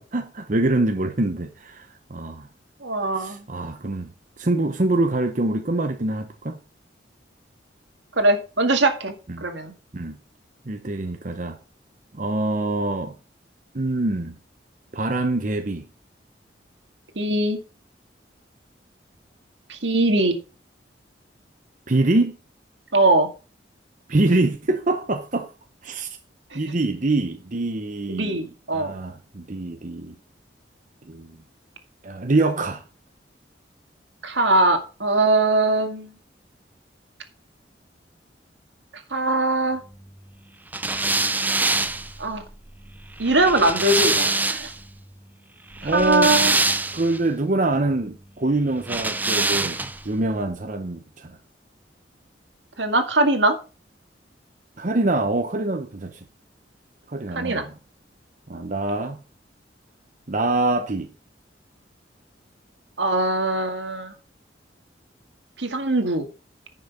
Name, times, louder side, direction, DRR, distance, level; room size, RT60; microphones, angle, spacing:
voice 1, 0.0-2.5 3.1-4.1 4.4-6.6 9.3-9.4 9.9-10.2 10.6-11.6 12.1-13.2 13.7-14.4 14.9-15.9 21.9-22.4 24.1-25.5 25.8-26.1 26.5-30.2 31.1-31.4 32.0-32.8 45.8-46.3 46.9-51.4 54.8-56.2 57.1-57.7 58.5-59.2 60.3-61.1, right 2 dB, 45° right, 0.9 m, -25 dB
voice 2, 2.8-3.4 8.2-9.1 9.4-9.7 17.2-17.6 19.7-20.4 22.9-23.3 26.5-26.6 28.1-29.0 34.2-36.1 39.1-39.8 42.2-42.4 43.2-44.7 45.9-46.5 52.8-53.6 57.4-57.7 63.0-64.1 65.6-66.3, right 2 dB, 80° right, 2.1 m, -21 dB
sound 1, 40.7-44.8 45.7-47.2 48.8-50.1, right 3 dB, 10° right, 0.6 m, -24 dB
10.5 x 6.4 x 5.5 m
head